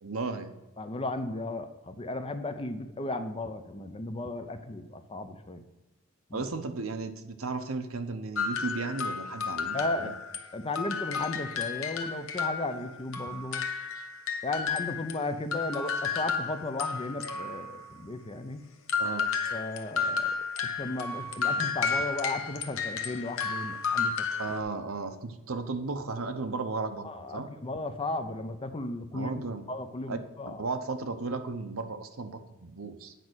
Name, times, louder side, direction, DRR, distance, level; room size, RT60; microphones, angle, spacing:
voice 1, 0.0-0.5 6.3-10.1 19.0-19.3 24.4-27.5 29.1-29.6 30.1-30.2 30.5-33.1, right 3 dB, 75° right, 8 dB, 0.9 m, -35 dB
voice 2, 0.8-5.6 6.3-6.4 9.7-10.1 10.5-13.7 14.4-18.6 19.5-20.4 20.8-24.3 27.0-29.4 29.7-30.6, left 2 dB, 25° left, 8 dB, 0.7 m, -35 dB
sound 1, 8.4-10.5 10.7-15.2 15.5-17.9 18.9-24.6, left 5 dB, 70° left, 1.0 m, -32 dB
9.2 x 5.4 x 6.2 m, 1.0 s
head